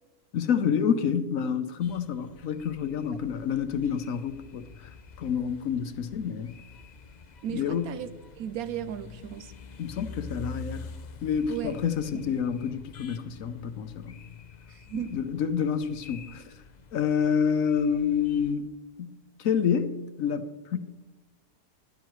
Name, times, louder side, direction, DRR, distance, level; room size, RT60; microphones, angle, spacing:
voice 1, 0.3-4.6 5.2-6.5 7.5-7.9 9.8-10.8 11.2-14.2 15.1-16.4 16.9-18.7 19.0-19.1 19.4-20.8, left 7 dB, 65° left, 1.1 m, -28 dB
sound 1, 1.8-18.5, left 4 dB, 50° left, 0.5 m, -47 dB
voice 2, 7.4-8.1 8.4-9.5 11.5-11.8 12.1-12.4 14.7-15.3, right 11 dB, 75° right, 1.0 m, -36 dB
14.0 x 11.0 x 3.1 m
omnidirectional pair, 1.6 m